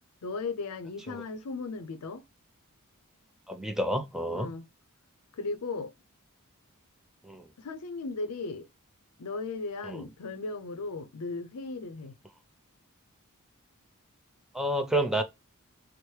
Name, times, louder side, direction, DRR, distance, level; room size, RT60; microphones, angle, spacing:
voice 1, 0.2-2.2 4.3-4.7 5.3-5.9 7.6-8.7 9.2-12.1, left 3 dB, 75° left, 0.5 m, -36 dB
voice 2, 3.5-4.5 7.3-7.4 9.9-10.0 14.5-15.2, right 1 dB, ahead, 0.4 m, -29 dB
4.5 x 2.0 x 3.1 m
head